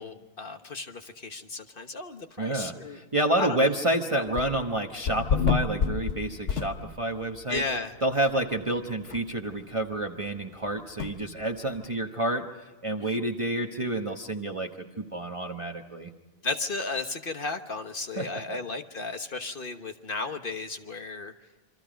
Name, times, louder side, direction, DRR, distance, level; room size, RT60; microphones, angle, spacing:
voice 1, 0.0-3.0 3.4-3.7 4.1-4.2 7.5-7.9 13.1-13.2 16.4-21.3, left 3 dB, 50° left, 6 dB, 1.4 m, -34 dB
voice 2, 2.4-7.6 8.0-16.1 18.2-18.6, right 1 dB, 30° right, 2 dB, 1.1 m, -29 dB
sound 1, 4.3-4.7 5.1-7.2 7.6-7.7 8.2-8.3 8.6-8.7 9.1-9.2 11.0-11.1, left 6 dB, 80° left, 1.4 m, -28 dB
27.5 x 24.0 x 5.1 m, 1.2 s
omnidirectional pair, 1.2 m